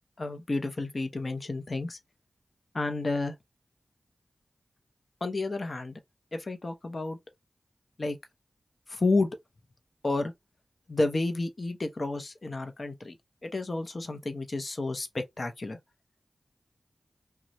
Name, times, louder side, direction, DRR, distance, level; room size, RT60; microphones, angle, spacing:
voice 1, 0.2-2.0 2.7-3.3 5.2-6.0 6.3-7.2 8.0-8.2 8.9-9.3 10.0-10.3 10.9-13.2 13.4-15.8, left 2 dB, 55° left, 0.7 m, -30 dB
2.6 x 2.3 x 3.0 m
cardioid pair, 45°, 0 cm